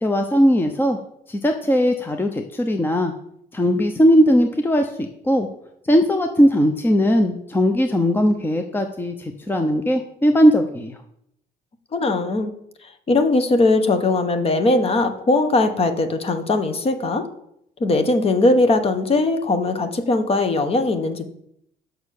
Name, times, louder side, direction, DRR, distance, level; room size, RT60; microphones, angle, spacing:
voice 1, 0.0-1.0 1.3-3.1 3.5-5.5 5.9-10.9, equal, 10° left, 6 dB, 0.7 m, -19 dB
voice 2, 11.9-12.5 12.8-17.2 17.8-21.3, left 2 dB, 35° left, 8 dB, 1.3 m, -20 dB
7.4 x 6.2 x 6.6 m, 0.74 s
cardioid pair, 110°, 17 cm